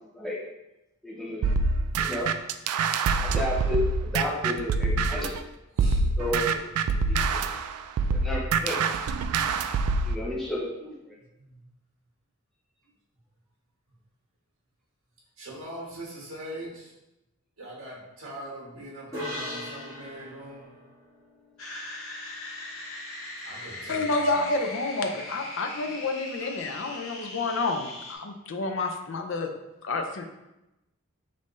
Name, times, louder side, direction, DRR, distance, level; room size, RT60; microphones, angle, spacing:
voice 1, 1.0-1.4 2.0-2.3 3.2-5.3 5.9-6.6 7.1-7.4 8.1-8.9 10.0-10.9, left 1 dB, ahead, -6 dB, 0.7 m, -32 dB
sound 1, 1.4-5.4 5.8-10.2, right 4 dB, 90° right, 0.3 m, -25 dB
voice 2, 5.7-6.1 6.9-7.3 8.0-8.1 11.4-11.6 15.4-16.9 17.6-20.7 23.4-24.4, right 1 dB, 65° right, -4 dB, 1.4 m, -42 dB
sound 2, 19.1-22.6, left 1 dB, 15° right, 1.4 m, -40 dB
sound 3, 21.6-28.1, left 2 dB, 75° left, 0.9 m, -40 dB
voice 3, 23.9-29.5 29.8-30.3, left 3 dB, 60° left, 5 dB, 0.5 m, -29 dB
5.3 x 2.7 x 3.1 m, 0.96 s
head